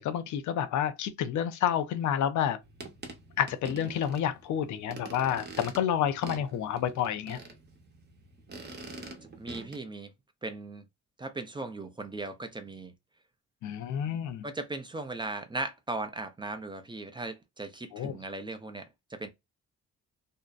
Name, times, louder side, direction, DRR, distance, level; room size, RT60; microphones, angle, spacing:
voice 1, 0.0-2.6 3.4-7.4 13.6-14.4 17.9-18.2, left 9 dB, 75° left, 0.5 m, -29 dB
sound 1, 2.6-9.8, right 3 dB, 35° right, 0.8 m, -45 dB
voice 2, 9.4-10.1 10.4-10.8 11.2-12.9 14.4-19.3, right 2 dB, 15° right, 0.5 m, -38 dB
2.6 x 2.1 x 2.3 m
cardioid pair, 90°, 30 cm